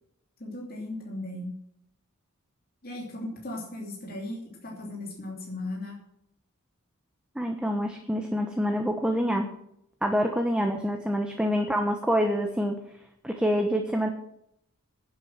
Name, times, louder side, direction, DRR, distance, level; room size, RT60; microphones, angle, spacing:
voice 1, 0.4-1.5 2.8-6.0, left 1 dB, 45° left, -2 dB, 2.9 m, -37 dB
voice 2, 7.3-9.5 10.0-12.8 13.2-14.1, equal, 5° right, 3 dB, 1.0 m, -26 dB
11.0 x 8.1 x 7.2 m, 0.76 s
head